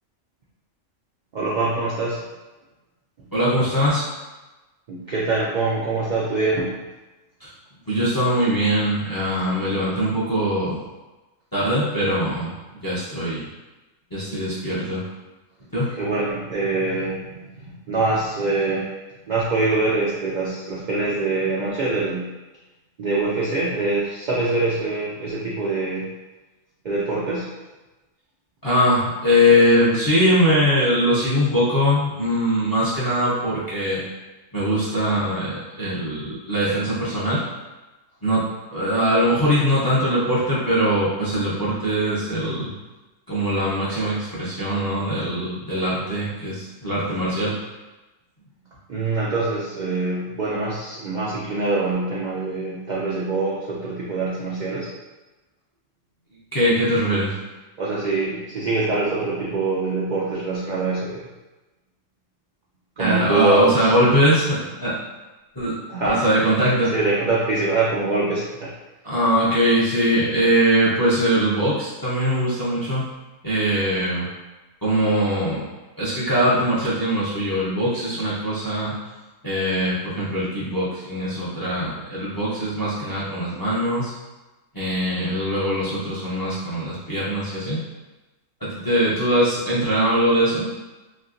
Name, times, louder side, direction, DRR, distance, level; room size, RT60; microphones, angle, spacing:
voice 1, 1.3-2.2 4.9-6.8 16.0-17.4 17.9-18.9 19.3-22.3 23.0-26.0 26.8-27.5 48.9-54.9 57.8-61.2 63.0-63.9 65.9-66.2 66.9-68.7, right 3 dB, 85° right, -6 dB, 0.4 m, -24 dB
voice 2, 3.3-4.0 7.4-7.5 7.9-10.8 11.5-12.5 12.8-13.5 14.1-15.1 15.7-15.9 28.6-34.0 34.5-37.4 38.2-42.7 43.3-47.6 56.5-57.4 63.0-65.0 65.6-65.7 66.0-66.9 69.0-73.1 73.4-74.3 74.8-75.6 76.0-79.0 79.4-84.1 84.7-87.8 88.6-90.7, equal, 30° left, -8 dB, 0.4 m, -21 dB
3.1 x 2.7 x 2.5 m, 1.1 s
omnidirectional pair, 1.4 m